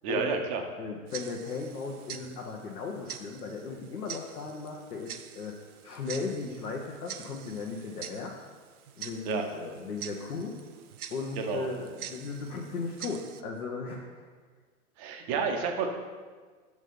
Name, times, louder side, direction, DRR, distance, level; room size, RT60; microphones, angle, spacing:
voice 1, 0.0-0.6 9.3-9.4 11.4-11.7 15.0-15.9, right 5 dB, 25° right, 4 dB, 0.5 m, -30 dB
voice 2, 0.8-5.6 5.8-8.3 9.0-10.6 11.1-14.3, left 4 dB, 85° left, -2 dB, 0.9 m, -36 dB
Tick-tock, 1.1-13.4, right 9 dB, 75° right, 0.6 m, -46 dB
6.5 x 3.1 x 5.1 m, 1.5 s
hypercardioid pair, 115°, 44 cm